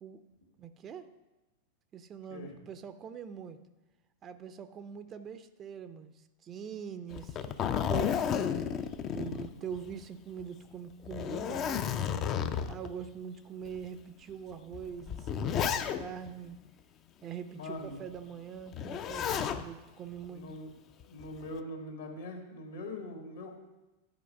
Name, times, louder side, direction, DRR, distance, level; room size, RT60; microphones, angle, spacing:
voice 1, 0.6-1.1 1.9-3.6 4.2-8.5 9.1-12.2 12.7-16.6 17.2-20.5, right 7 dB, 30° right, 11 dB, 0.5 m, -43 dB
Zipper (clothing), 7.1-10.0 10.4-10.5 11.0-12.9 13.6-13.8 14.7-16.3 18.7-19.6 21.0-21.5, left 8 dB, 35° left, 0.5 m, -32 dB
voice 2, 9.3-9.7 17.5-18.0 20.3-20.7 21.1-23.5, left 1 dB, 65° left, 2 dB, 1.8 m, -42 dB
10.5 x 4.5 x 5.4 m, 1.1 s
figure-of-eight pair, 90°, 0 cm